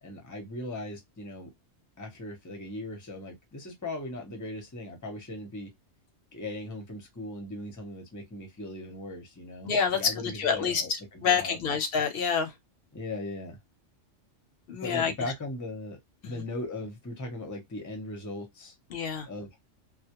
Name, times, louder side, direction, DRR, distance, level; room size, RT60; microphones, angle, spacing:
voice 1, 0.0-1.5 2.0-5.7 6.3-11.8 12.9-13.6 14.8-16.0 16.2-18.7 19.2-19.6, left 2 dB, 20° left, 0.6 m, -38 dB
voice 2, 9.6-10.8 11.2-12.5 14.7-15.1 18.9-19.3, left 6 dB, 60° left, 0.7 m, -27 dB
2.2 x 2.1 x 2.8 m
omnidirectional pair, 1.2 m